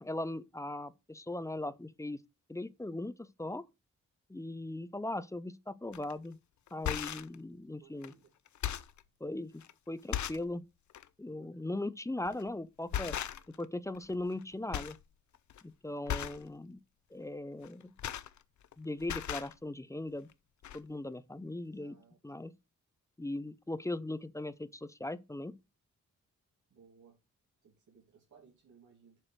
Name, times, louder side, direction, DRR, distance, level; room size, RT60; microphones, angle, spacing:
voice 1, 0.0-2.2 2.5-3.6 4.3-6.4 6.7-8.1 9.2-10.6 11.2-13.2 13.6-15.0 15.6-16.8 17.1-17.9 18.8-20.3 20.7-22.0 22.2-22.5 23.2-25.6, left 2 dB, 10° left, 0.4 m, -39 dB
sound 1, 5.9-6.1 6.7-7.3 8.0-8.1 8.5-9.0 9.6-9.7 10.1-10.5 10.9-11.1 12.2-12.5 12.9-13.6 13.9-14.4 14.7-15.0 15.3-15.6 16.1-16.5 17.6-18.7 19.0-19.5 20.3-20.4 20.6-20.8, left 10 dB, 65° left, 0.6 m, -37 dB
voice 2, 7.7-8.2 11.3-11.8 21.7-22.2 26.7-27.2 27.6-29.2, right 6 dB, 70° right, 2.7 m, -61 dB
7.4 x 4.9 x 6.4 m
wide cardioid pair, 180°, 31 cm